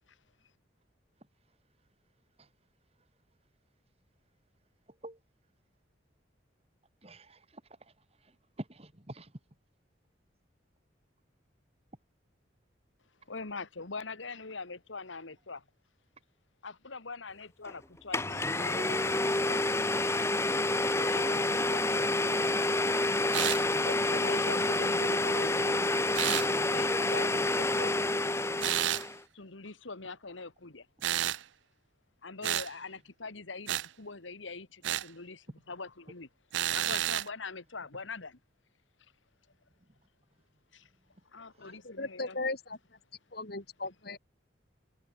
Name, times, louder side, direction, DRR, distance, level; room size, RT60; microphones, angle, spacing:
voice 1, 4.9-5.2 7.0-7.9 8.2-9.3 39.8-39.9 41.5-41.8, right 1 dB, 30° right, 2.2 m, -49 dB
voice 2, 13.3-15.6 16.6-19.7 20.9-22.4 23.8-25.8 26.7-28.0 29.3-30.9 32.2-36.3 36.7-38.4 40.7-40.9 41.3-42.4, left 4 dB, 85° left, 1.9 m, -42 dB
Domestic sounds home sounds, 17.7-17.8 18.1-29.2, left 2 dB, 15° left, 1.0 m, -28 dB
sound 1, 23.3-23.6 26.1-26.5 28.6-29.1 31.0-31.4 32.4-32.7 33.7-33.9 34.8-35.1 36.5-37.3, right 13 dB, 75° right, 0.4 m, -30 dB
voice 3, 41.6-42.8 43.3-44.2, left 2 dB, 55° left, 3.2 m, -37 dB
head